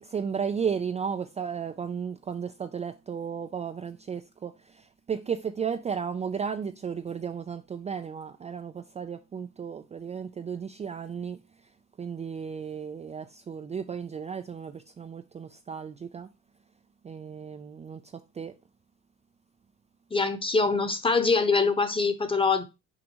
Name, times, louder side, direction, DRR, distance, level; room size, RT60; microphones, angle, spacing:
voice 1, 0.0-11.4 12.0-16.3 17.0-18.0 18.3-18.5, right 7 dB, 20° right, 0.4 m, -34 dB
voice 2, 20.1-22.6, left 4 dB, 15° left, 1.0 m, -24 dB
6.1 x 5.2 x 3.0 m
cardioid pair, 125°, 30 cm